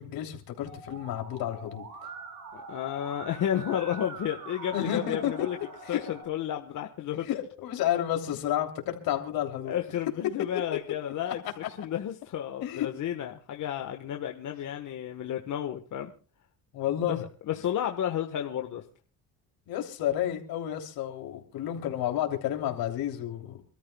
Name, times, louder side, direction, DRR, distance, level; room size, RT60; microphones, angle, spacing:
voice 1, 0.0-1.8 4.7-5.3 5.8-6.1 7.3-9.8 11.3-11.4 12.6-12.9 16.7-17.2 19.7-23.6, left 11 dB, 80° left, 3 dB, 3.2 m, -31 dB
Musical instrument, 0.7-6.2, right 4 dB, 65° right, 7.4 m, -44 dB
voice 2, 2.5-5.6 5.9-7.3 9.6-16.1 17.1-18.8, left 10 dB, 55° left, 4 dB, 1.4 m, -32 dB
27.5 x 13.5 x 2.3 m, 0.38 s
cardioid pair, 100°, 36 cm